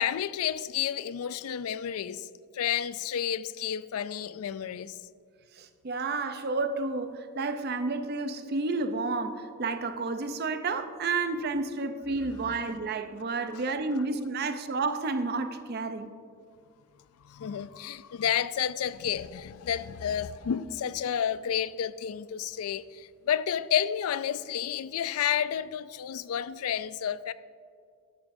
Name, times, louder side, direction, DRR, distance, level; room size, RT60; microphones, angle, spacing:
voice 1, 0.0-2.3 2.5-5.0 12.4-12.5 13.5-13.6 17.2-27.3, left 9 dB, 75° left, 0.3 m, -31 dB
voice 2, 5.6-16.1, right 3 dB, 45° right, 0.6 m, -31 dB
12.0 x 12.0 x 2.6 m
head